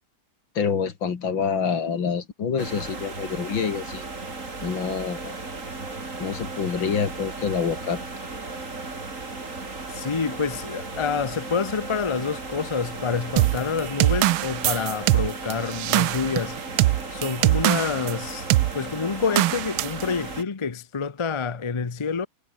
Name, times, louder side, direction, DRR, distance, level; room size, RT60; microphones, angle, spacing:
voice 1, 0.5-4.0 4.6-5.4 6.2-8.0, left 6 dB, 70° left, 3.0 m, -27 dB
sound 1, 2.6-20.4, right 3 dB, 40° right, 3.8 m, -36 dB
voice 2, 9.9-16.6 17.1-18.5 18.7-22.3, left 5 dB, 50° left, 0.3 m, -27 dB
sound 2, 13.4-18.2 18.5-18.7 19.4-20.0, right 17 dB, 85° right, 1.4 m, -22 dB
omnidirectional pair, 2.2 m